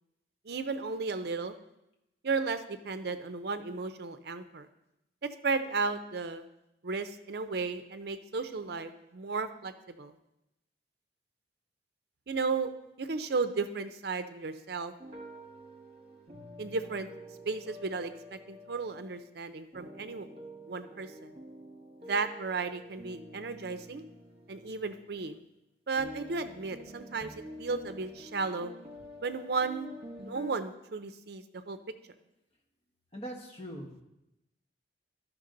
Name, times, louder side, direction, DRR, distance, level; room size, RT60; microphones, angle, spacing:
voice 1, 0.4-1.6 2.2-4.7 5.2-6.4 6.8-10.1 12.3-12.7 13.0-14.9 16.6-17.1 17.5-20.3 20.7-21.3 22.0-24.0 24.5-25.4 25.9-28.7 29.2-29.9 30.2-31.8, right 4 dB, 60° right, 10 dB, 0.6 m, -34 dB
sound 1, 15.0-19.3 19.7-25.3 26.0-30.5, equal, 35° right, 1.3 m, -48 dB
voice 2, 33.1-34.0, equal, 35° left, -1 dB, 1.4 m, -41 dB
13.5 x 5.9 x 3.9 m, 0.89 s
head